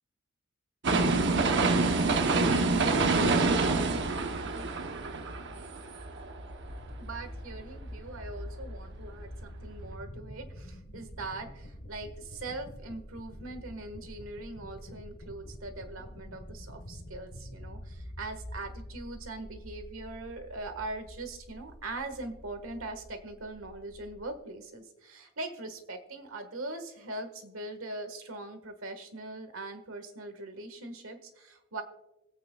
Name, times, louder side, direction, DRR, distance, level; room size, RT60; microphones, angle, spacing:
sound 1, 0.8-6.8 7.2-7.3, right 3 dB, 60° right, 0.8 m, -26 dB
sound 2, 6.6-24.3, equal, 55° left, 1.4 m, -46 dB
voice 1, 7.0-31.8, right 2 dB, 85° right, 8 dB, 1.5 m, -41 dB
25.5 x 8.6 x 2.3 m, 0.94 s
head